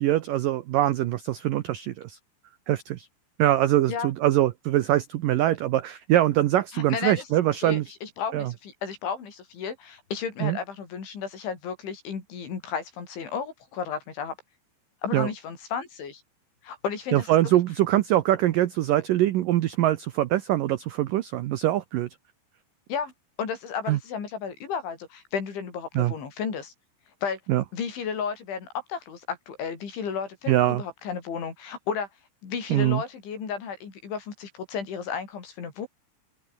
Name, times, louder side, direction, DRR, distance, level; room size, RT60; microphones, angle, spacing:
voice 1, 0.0-2.2 2.7-3.1 3.4-7.8 8.3-8.5 10.4-10.6 15.1-15.3 17.1-22.1 23.9-24.0 26.0-26.1 27.5-27.6 30.5-30.8 32.7-33.0, right 14 dB, 85° right, 1.9 m, -23 dB
voice 2, 6.7-7.2 7.6-14.4 15.0-16.2 16.6-17.6 22.9-23.1 23.4-26.7 27.2-27.4 27.7-32.1 32.4-35.9, left 6 dB, 90° left, 7.6 m, -33 dB
open air
omnidirectional pair, 5.2 m